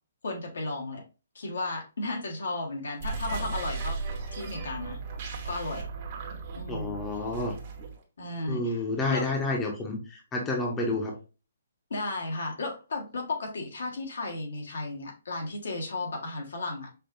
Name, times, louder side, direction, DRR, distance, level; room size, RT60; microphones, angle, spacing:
voice 1, 0.2-1.0 1.3-4.0 4.3-5.0 5.4-5.9 6.5-6.9 8.2-8.8 9.1-9.3 11.9-16.9, left 2 dB, 75° left, 1 dB, 1.6 m, -34 dB
sound 1, 2.9-8.0, right 4 dB, 40° right, 1.1 m, -36 dB
voice 2, 6.7-7.5 8.5-11.1, left 2 dB, 15° left, 0 dB, 0.9 m, -30 dB
5.3 x 2.5 x 2.6 m, 0.32 s
hypercardioid pair, 155°, 0 cm